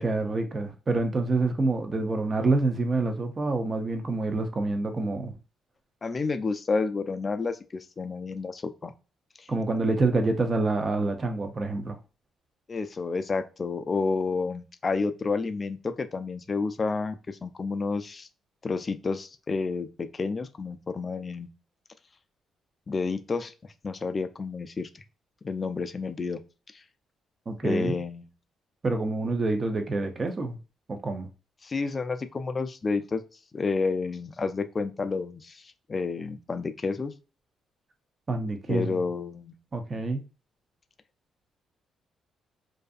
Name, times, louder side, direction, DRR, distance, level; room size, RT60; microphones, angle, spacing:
voice 1, 0.0-5.3 9.5-12.0 27.5-28.0 28.8-30.6 30.9-31.3 38.3-39.0 39.7-40.2, right 3 dB, 35° right, 0.5 m, -27 dB
voice 2, 6.0-8.9 9.4-9.5 12.7-18.3 18.6-21.5 22.9-23.5 23.8-25.0 25.4-26.4 26.7-26.8 27.6-28.3 31.6-33.2 33.5-37.1 38.7-39.5, left 4 dB, 35° left, 0.3 m, -30 dB
2.6 x 2.3 x 2.4 m
cardioid pair, 90°, 0 cm